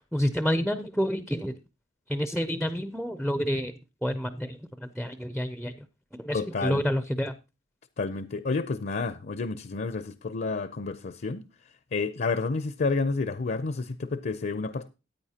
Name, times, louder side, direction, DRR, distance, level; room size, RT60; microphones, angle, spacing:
voice 1, 0.1-1.5 2.1-3.7 4.0-5.7 6.2-7.3, equal, ahead, 0.5 m, -29 dB
voice 2, 6.3-6.8 8.0-11.4 11.9-14.9, left 4 dB, 50° left, 0.5 m, -30 dB
14.0 x 9.1 x 2.8 m
head